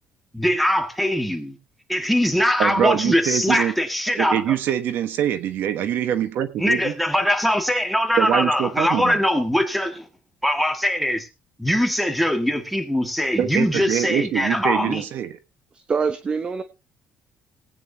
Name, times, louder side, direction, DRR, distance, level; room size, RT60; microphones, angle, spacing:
voice 1, 0.3-1.6 1.9-4.4 6.6-10.1 10.4-11.3 11.6-15.0, equal, ahead, 1.8 m, -22 dB
voice 2, 2.6-3.7 4.2-6.9 8.2-9.2 13.4-15.4, right 10 dB, 70° right, 1.3 m, -24 dB
voice 3, 15.7-16.6, right 5 dB, 30° right, 0.9 m, -25 dB
19.5 x 9.2 x 2.8 m
cardioid pair, 130°, 4 cm